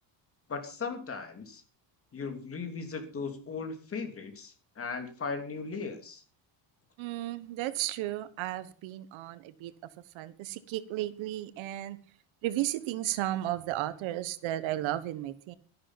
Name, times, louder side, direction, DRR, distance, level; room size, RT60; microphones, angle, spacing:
voice 1, 0.5-1.6 2.1-6.2, left 4 dB, 25° left, 2.9 m, -37 dB
voice 2, 7.0-9.7 10.1-12.0 12.4-15.5, right 14 dB, 70° right, 1.3 m, -34 dB
13.0 x 11.0 x 5.8 m
cardioid pair, 150°, 49 cm